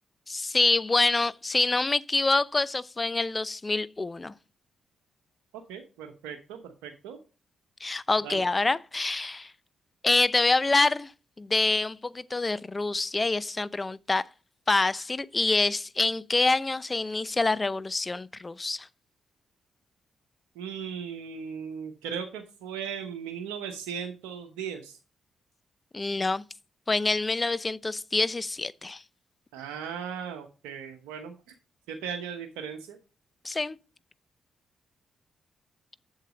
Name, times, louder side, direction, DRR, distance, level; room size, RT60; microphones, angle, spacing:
voice 1, 0.3-4.3 7.8-9.5 10.0-11.1 11.4-14.2 14.7-18.9 25.9-26.4 26.9-29.0 33.4-33.8, left 3 dB, 30° left, 0.6 m, -26 dB
voice 2, 5.7-7.2 8.2-8.4 20.6-25.0 29.5-31.3 31.9-33.0, right 7 dB, 85° right, 1.0 m, -37 dB
7.7 x 7.4 x 5.1 m
hypercardioid pair, 45°, 0 cm